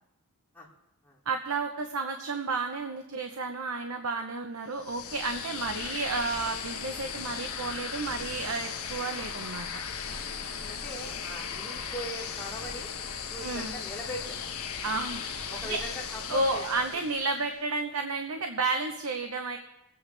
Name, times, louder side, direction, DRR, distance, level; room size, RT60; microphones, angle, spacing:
voice 1, 1.3-9.7 13.4-13.7 14.8-15.2 15.6-15.8 16.3-19.6, right 3 dB, 70° right, 5 dB, 0.9 m, -31 dB
sound 1, 4.7-17.5, left 6 dB, 80° left, 1.3 m, -37 dB
voice 2, 10.7-12.9 13.3-14.4 14.8-14.9 15.5-16.9, left 1 dB, 10° left, -5 dB, 2.6 m, -40 dB
24.5 x 8.7 x 3.4 m, 0.89 s
head